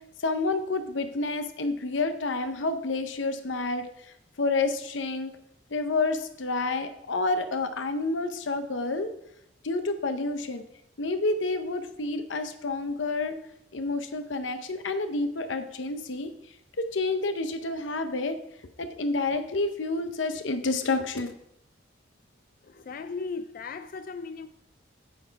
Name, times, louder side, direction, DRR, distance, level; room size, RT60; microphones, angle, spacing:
voice 1, 0.2-5.3 5.7-9.1 9.6-10.6 11.0-13.3 13.7-16.3 16.8-18.4 18.8-21.3, left 3 dB, 80° left, 0.8 m, -29 dB
voice 2, 22.6-24.5, left 4 dB, 50° left, 0.4 m, -37 dB
9.6 x 6.1 x 4.6 m
head